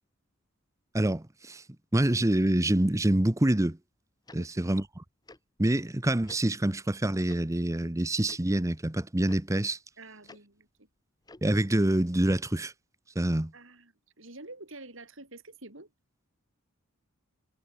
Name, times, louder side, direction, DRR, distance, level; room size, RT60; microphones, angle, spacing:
voice 1, 0.9-1.6 1.9-3.8 4.3-5.0 5.6-9.8 11.4-12.7 13.2-13.5, right 1 dB, 15° right, 0.8 m, -26 dB
Tick-tock, 4.3-4.4 5.3-5.4 6.3-6.4 7.3-7.4 8.2-8.4 9.3-9.4 10.3-10.4 11.2-11.5, left 2 dB, 20° left, 1.4 m, -49 dB
voice 2, 10.0-10.9 13.5-15.9, right 2 dB, 65° right, 5.5 m, -48 dB
head